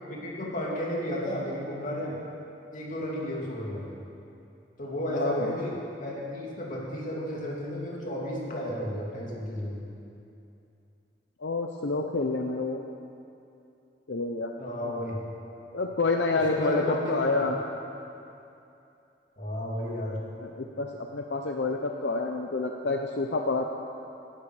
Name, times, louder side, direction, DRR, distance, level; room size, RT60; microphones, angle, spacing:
voice 1, 0.1-2.2 2.7-3.9 4.8-9.8 14.6-15.2 16.3-17.4 19.4-20.2, equal, 50° left, -4 dB, 3.1 m, -33 dB
voice 2, 5.1-5.5 11.4-12.9 14.1-14.5 15.7-17.5 20.4-20.9 21.1-23.6, left 3 dB, 80° left, 2 dB, 0.8 m, -28 dB
19.5 x 11.5 x 5.0 m, 2.7 s
head